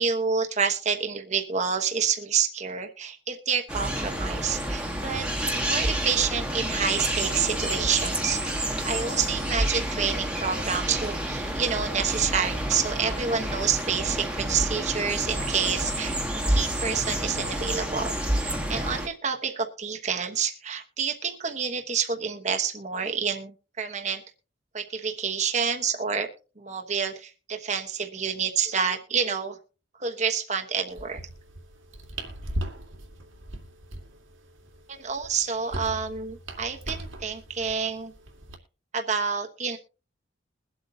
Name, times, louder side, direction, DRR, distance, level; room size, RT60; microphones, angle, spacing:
voice 1, 0.0-5.3 5.5-16.1 16.5-18.1 18.4-24.2 24.7-26.3 26.6-29.6 30.0-31.2 34.9-38.1 38.9-39.8, right 6 dB, 35° right, 4 dB, 1.1 m, -28 dB
sound 1, 3.7-19.1, right 1 dB, 5° right, 1.4 m, -29 dB
sound 2, 30.9-38.6, right 1 dB, 85° right, 2.2 m, -39 dB
22.0 x 8.0 x 2.8 m, 0.34 s
head